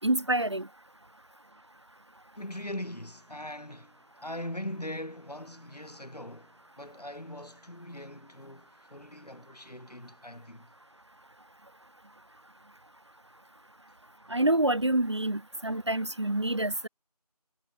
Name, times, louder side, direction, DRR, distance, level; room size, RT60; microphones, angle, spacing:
voice 1, 0.0-0.7 14.3-16.9, right 1 dB, 45° right, 0.6 m, -27 dB
voice 2, 2.3-10.7, left 1 dB, 80° left, 6.5 m, -41 dB
figure-of-eight pair, 170°, 20 cm